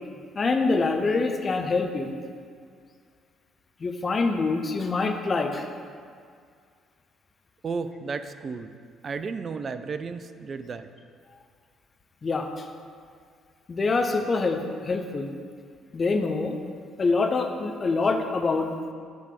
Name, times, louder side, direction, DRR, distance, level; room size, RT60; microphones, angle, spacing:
voice 1, 0.4-2.1 3.8-5.7 12.2-12.6 13.7-15.3 15.9-16.6 17.0-18.7, left 3 dB, 35° left, 5 dB, 0.7 m, -25 dB
voice 2, 7.6-8.8 9.0-10.9, right 4 dB, 40° right, 10 dB, 0.4 m, -33 dB
9.3 x 3.4 x 5.1 m, 2.1 s
figure-of-eight pair, 45°, 0 cm